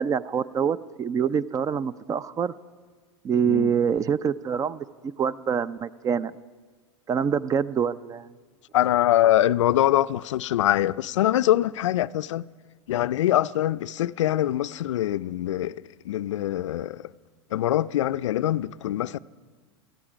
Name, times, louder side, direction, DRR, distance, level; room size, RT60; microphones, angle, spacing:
voice 1, 0.0-2.5 3.2-4.8 5.2-6.3 7.1-8.3, right 7 dB, 20° right, 0.4 m, -25 dB
voice 2, 8.7-12.5 12.9-17.1 17.5-19.2, left 13 dB, 85° left, 0.4 m, -24 dB
18.5 x 14.5 x 5.1 m
hypercardioid pair, 115°, 15 cm